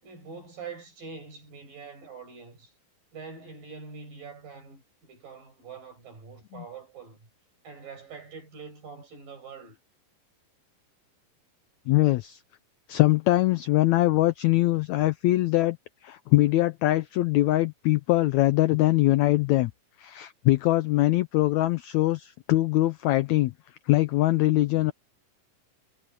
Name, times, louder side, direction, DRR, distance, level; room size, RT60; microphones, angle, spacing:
voice 1, 0.0-2.7 3.1-7.3 7.6-9.8, right 5 dB, 80° right, 9.6 m, -44 dB
voice 2, 11.9-12.4 12.9-15.8 16.0-19.7 20.0-23.5 23.9-24.9, left 17 dB, 85° left, 1.6 m, -22 dB
omnidirectional pair, 4.0 m